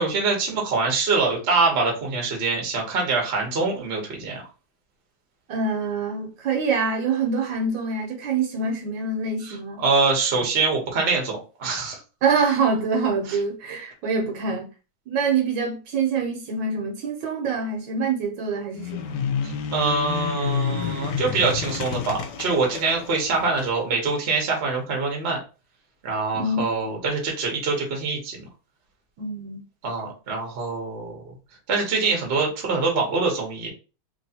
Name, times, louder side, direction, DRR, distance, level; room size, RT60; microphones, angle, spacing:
voice 1, 0.0-4.4 9.5-12.0 19.4-25.4 26.0-28.5 29.8-31.3 31.7-33.7, right 4 dB, 45° right, 0.9 m, -24 dB
voice 2, 5.5-9.8 12.2-14.7 15.1-19.2 26.3-26.7 29.2-29.6, right 4 dB, 70° right, 1.5 m, -25 dB
sound 1, 18.7-23.7, left 7 dB, 70° left, 1.1 m, -30 dB
3.1 x 3.0 x 2.8 m
omnidirectional pair, 2.2 m